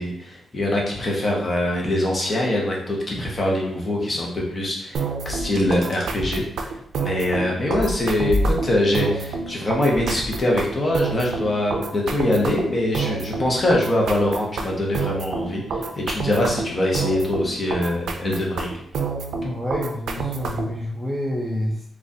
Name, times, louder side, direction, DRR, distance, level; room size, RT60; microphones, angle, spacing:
voice 1, 0.0-6.4 7.0-15.6 16.0-18.7, left 1 dB, 25° left, -2 dB, 0.8 m, -23 dB
sound 1, 4.9-20.8, right 4 dB, 80° right, 0.4 m, -28 dB
Car, 5.2-6.5 7.7-9.0 9.9-10.7, equal, 50° right, 0.7 m, -29 dB
voice 2, 19.4-21.9, left 1 dB, 5° right, -3 dB, 0.4 m, -28 dB
3.6 x 2.4 x 2.6 m, 0.68 s
wide cardioid pair, 130°, 0 cm